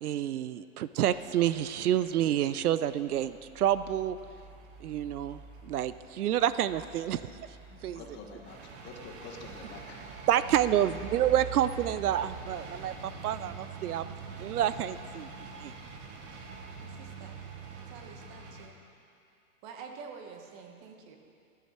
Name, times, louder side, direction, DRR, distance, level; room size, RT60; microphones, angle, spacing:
voice 1, 0.0-4.2 4.8-7.2 7.8-8.0 10.3-14.0 14.4-15.3 15.6-15.7, right 11 dB, 90° right, 15 dB, 0.6 m, -28 dB
sound 1, 1.0-18.7, right 4 dB, 15° right, 0.4 m, -45 dB
voice 2, 7.7-10.0 10.7-10.9, left 4 dB, 25° left, 2 dB, 1.1 m, -47 dB
voice 3, 16.8-17.4 17.8-18.8 19.6-21.2, right 5 dB, 30° right, 4 dB, 1.2 m, -48 dB
14.0 x 10.5 x 4.4 m, 2.4 s
hypercardioid pair, 140°, 43 cm